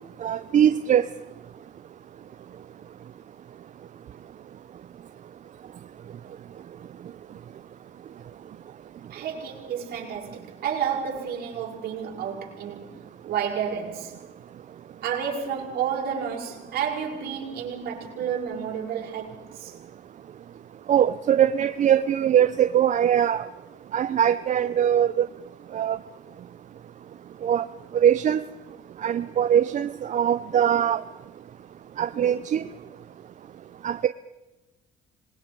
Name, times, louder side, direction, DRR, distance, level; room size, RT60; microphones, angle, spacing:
voice 1, 0.2-1.0 20.9-23.4 23.9-25.2 25.7-26.0 27.4-27.7 28.0-28.4 29.0-31.0 32.0-32.6 33.8-34.1, right 9 dB, 45° right, 0.7 m, -21 dB
voice 2, 9.1-14.2 15.0-19.8, right 7 dB, 70° right, 5.4 m, -31 dB
27.0 x 21.0 x 4.7 m
cardioid pair, 110°, 17 cm